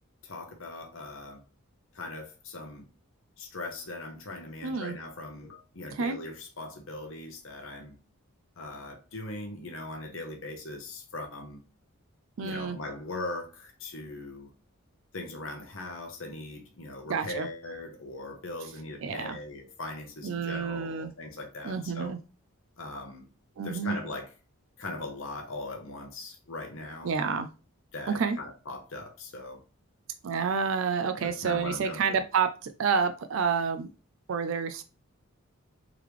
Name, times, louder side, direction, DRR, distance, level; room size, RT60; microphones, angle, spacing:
voice 1, 0.2-1.4 1.9-2.8 3.4-7.9 8.6-11.6 12.4-14.5 15.1-22.1 22.8-23.3 23.6-24.3 24.8-27.1 27.9-29.6 31.2-32.2, left 2 dB, 60° left, 0.9 m, -40 dB
voice 2, 4.6-5.0 5.9-6.2 12.4-12.8 17.1-17.5 19.0-19.4 20.2-21.1 21.6-22.2 23.6-23.9 27.0-27.5 28.1-28.4 30.2-33.9 34.3-34.8, right 6 dB, 60° right, 0.4 m, -29 dB
3.7 x 3.3 x 3.1 m
head